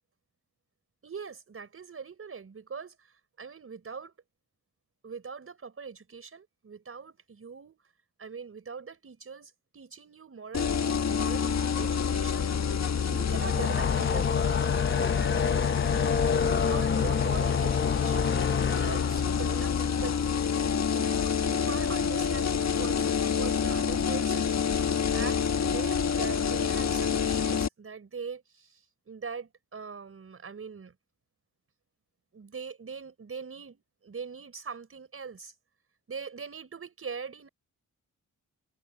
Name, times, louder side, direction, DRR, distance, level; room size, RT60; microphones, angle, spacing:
voice 1, 1.0-4.1 5.0-7.8 8.2-12.5 13.1-14.4 16.6-18.4 18.7-20.3 20.9-24.5 25.1-30.9 32.3-35.5 36.1-37.5, right 5 dB, 45° right, 5.0 m, -42 dB
sound 1, 10.5-27.7, left 7 dB, 55° left, 1.6 m, -28 dB
sound 2, 13.2-20.6, left 6 dB, 35° left, 1.2 m, -29 dB
cardioid pair, 95°, 32 cm